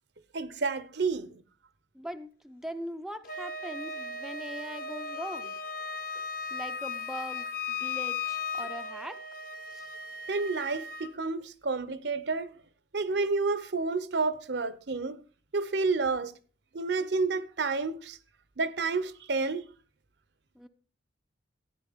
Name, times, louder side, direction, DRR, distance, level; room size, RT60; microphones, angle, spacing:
voice 1, 0.3-1.4 10.3-12.5 12.9-15.2 15.5-16.3 16.7-18.2 18.6-19.6, right 4 dB, 65° right, 0.8 m, -30 dB
voice 2, 1.9-5.5 6.5-9.2 9.7-9.9 20.6-20.7, equal, ahead, 0.5 m, -41 dB
Wind instrument woodwind instrument, 3.2-11.1, left 4 dB, 50° left, 1.2 m, -37 dB
13.5 x 10.0 x 3.6 m
head